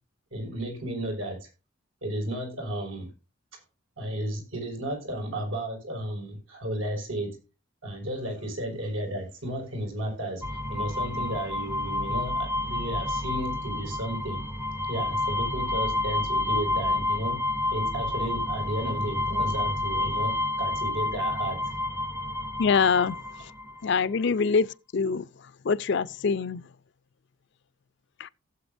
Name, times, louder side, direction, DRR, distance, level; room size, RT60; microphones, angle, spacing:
voice 1, 0.3-1.5 2.0-3.1 4.0-7.3 7.8-14.4 14.9-17.4 17.7-20.3 20.6-21.6, right 1 dB, 85° right, 5.8 m, -33 dB
sound 1, 10.4-23.8, left 2 dB, 10° right, 0.5 m, -29 dB
voice 2, 22.6-23.5 23.8-25.3 25.6-26.6 28.2-28.3, left 5 dB, 60° left, 0.5 m, -25 dB
17.0 x 7.9 x 2.6 m
head